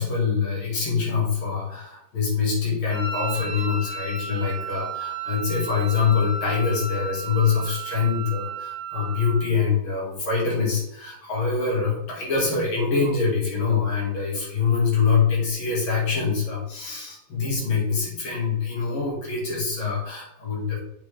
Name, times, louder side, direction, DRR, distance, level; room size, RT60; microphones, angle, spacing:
voice 1, 0.0-20.8, left 5 dB, 85° left, -4 dB, 2.7 m, -24 dB
Wind instrument woodwind instrument, 2.9-9.5, right 3 dB, 40° left, 1.9 m, -34 dB
7.3 x 3.9 x 3.3 m, 0.80 s
omnidirectional pair, 2.1 m